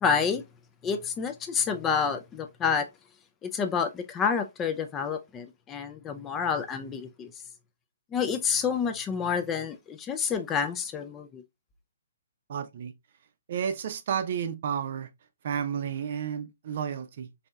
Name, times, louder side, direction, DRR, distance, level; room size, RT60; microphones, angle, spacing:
voice 1, 0.0-0.4 0.8-2.9 3.4-7.3 8.1-11.4, left 6 dB, 15° left, 0.3 m, -28 dB
voice 2, 12.5-12.9 13.5-15.1 15.4-17.3, right 8 dB, 55° right, 0.5 m, -31 dB
4.0 x 2.7 x 2.2 m
hypercardioid pair, 145°, 0 cm